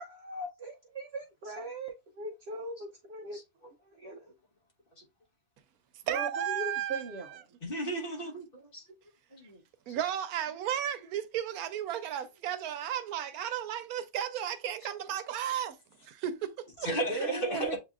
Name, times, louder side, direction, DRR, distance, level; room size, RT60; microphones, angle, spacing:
voice 1, 0.0-3.4 3.8-4.3 6.1-7.4 17.1-17.8, right 2 dB, 65° right, 0.7 m, -39 dB
voice 2, 6.1-7.1 9.9-15.8 16.0-16.9, right 10 dB, 90° right, 1.1 m, -34 dB
voice 3, 7.6-8.8 9.3-9.6 16.8-17.8, right 1 dB, 40° left, 1.3 m, -34 dB
7.4 x 2.7 x 2.4 m
omnidirectional pair, 1.5 m